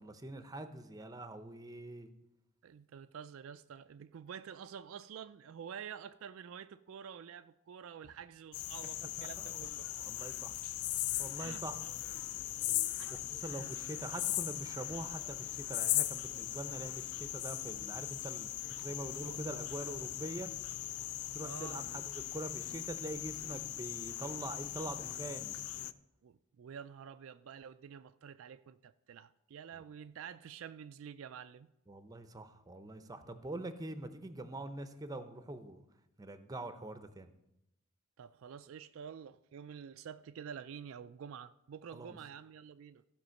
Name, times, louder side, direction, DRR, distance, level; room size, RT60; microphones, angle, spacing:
voice 1, 0.0-2.1 9.2-9.7 10.0-10.6 11.0-11.8 13.4-18.5 18.8-20.5 21.3-25.5 31.9-35.8 36.2-37.3 41.9-42.2, right 1 dB, 15° right, 0.6 m, -44 dB
voice 2, 2.6-9.9 11.4-11.6 13.0-13.9 21.4-21.8 26.2-31.7 38.2-43.0, right 7 dB, 65° right, 0.3 m, -49 dB
sound 1, 8.5-25.9, left 14 dB, 85° left, 0.4 m, -39 dB
sound 2, 10.0-20.0, left 3 dB, 50° left, 0.9 m, -60 dB
15.0 x 5.1 x 6.4 m
head